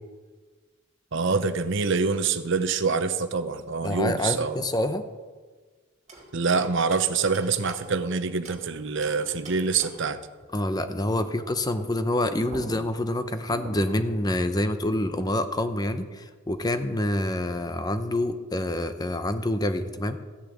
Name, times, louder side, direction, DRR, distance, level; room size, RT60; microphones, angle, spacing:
voice 1, 1.1-4.6 6.3-10.2, right 4 dB, 60° right, 10 dB, 0.8 m, -25 dB
voice 2, 3.8-5.0 10.5-20.2, left 1 dB, 20° left, 9 dB, 0.7 m, -27 dB
sound 1, 6.1-8.7 9.0-10.2 12.1-12.2 12.5-14.1, right 1 dB, 35° right, 2.8 m, -43 dB
14.5 x 6.4 x 8.5 m, 1.4 s
head